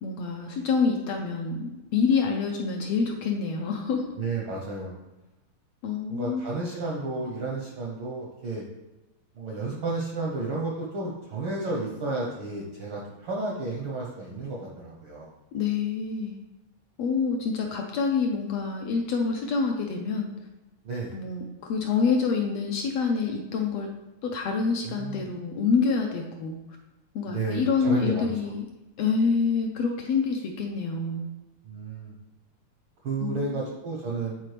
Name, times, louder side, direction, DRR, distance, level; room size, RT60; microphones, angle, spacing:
voice 1, 0.0-4.1 5.8-6.5 15.5-16.3 17.0-20.3 21.1-23.9 24.2-26.6 27.1-28.7 29.0-31.3 33.2-33.5, left 5 dB, 75° left, 2 dB, 1.5 m, -27 dB
voice 2, 4.2-4.9 6.1-8.7 9.3-15.3 20.8-21.1 24.8-25.3 27.3-28.5 31.6-32.1 33.0-34.4, right 3 dB, 70° right, -2 dB, 1.2 m, -32 dB
9.0 x 4.1 x 3.3 m, 1.0 s
omnidirectional pair, 3.3 m